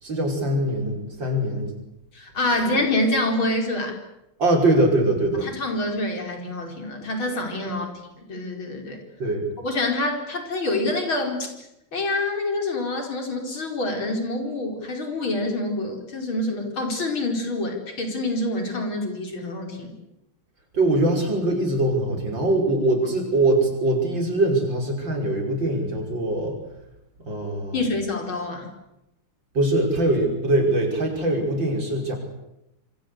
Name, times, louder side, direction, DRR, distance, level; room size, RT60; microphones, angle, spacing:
voice 1, 0.0-1.7 4.4-5.4 9.2-9.4 20.7-26.6 27.3-27.8 29.5-32.2, right 1 dB, 65° right, 3 dB, 6.2 m, -22 dB
voice 2, 2.1-4.0 5.3-7.9 8.3-9.0 9.6-11.7 11.9-19.9 27.7-28.7, left 2 dB, 80° left, 3 dB, 5.7 m, -26 dB
27.0 x 24.5 x 8.2 m, 0.88 s
omnidirectional pair, 2.2 m